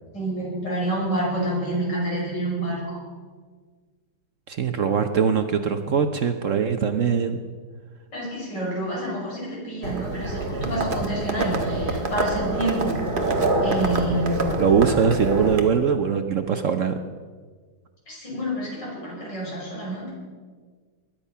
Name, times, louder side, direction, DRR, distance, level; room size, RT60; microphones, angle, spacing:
voice 1, 0.1-3.0 8.1-13.4 13.6-14.6 18.1-20.1, right 1 dB, 75° left, -5 dB, 6.7 m, -28 dB
voice 2, 4.5-7.4 14.6-17.0, right 7 dB, 55° right, 7 dB, 1.0 m, -22 dB
Livestock farm animals working animals, 9.8-15.6, right 2 dB, 30° right, 1.4 m, -26 dB
21.0 x 10.5 x 5.6 m, 1.5 s
omnidirectional pair, 1.9 m